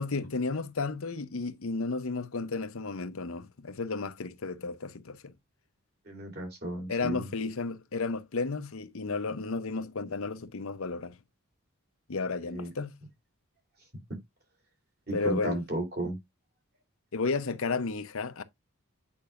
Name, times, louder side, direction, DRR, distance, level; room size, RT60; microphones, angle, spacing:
voice 1, 0.0-5.3 6.9-11.1 12.1-13.0 15.1-15.6 17.1-18.4, left 4 dB, 65° left, 0.8 m, -33 dB
voice 2, 6.1-7.3 12.5-12.7 15.1-16.2, right 1 dB, 45° right, 3.0 m, -34 dB
8.6 x 5.3 x 2.5 m
head